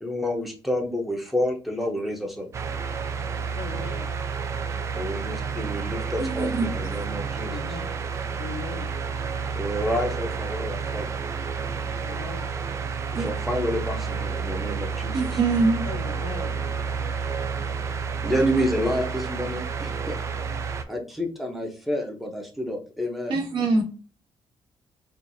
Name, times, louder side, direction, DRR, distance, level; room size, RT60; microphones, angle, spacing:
voice 1, 0.0-2.5 4.9-7.8 9.5-11.1 13.1-15.2 18.2-20.2 20.9-23.4, equal, ahead, 0.8 m, -29 dB
sound 1, 2.5-20.8, right 5 dB, 35° right, 0.4 m, -30 dB
voice 2, 3.6-4.1 7.4-7.9 8.4-8.9 12.0-12.5 15.9-16.6, left 5 dB, 60° left, 0.6 m, -38 dB
voice 3, 6.2-6.7 6.9-7.0 13.1-13.3 15.1-15.9 23.3-23.8, right 3 dB, 65° right, 1.5 m, -24 dB
4.5 x 2.5 x 2.6 m
cardioid pair, 165°, 9 cm